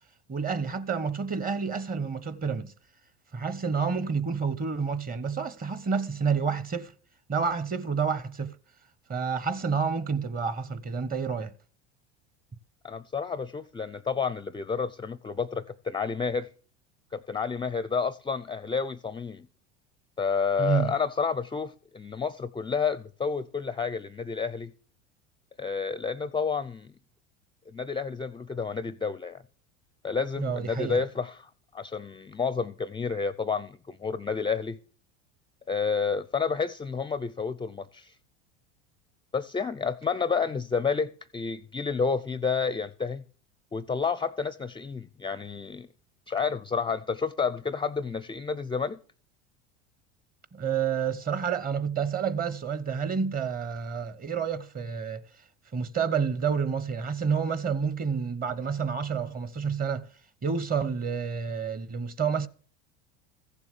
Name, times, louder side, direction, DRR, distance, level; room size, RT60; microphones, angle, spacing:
voice 1, 0.3-2.7 3.3-6.9 7.3-8.5 9.1-11.5 20.6-20.9 30.4-31.0 50.5-55.3 55.7-60.1 60.4-62.5, right 6 dB, 25° right, 1.0 m, -29 dB
voice 2, 12.8-16.5 17.1-19.5 20.2-24.7 25.6-26.9 27.7-29.4 30.0-34.8 35.7-38.1 39.3-43.2 43.7-45.9 46.3-49.0, left 5 dB, 15° left, 0.5 m, -30 dB
15.0 x 7.2 x 6.7 m
hypercardioid pair, 90°, 36 cm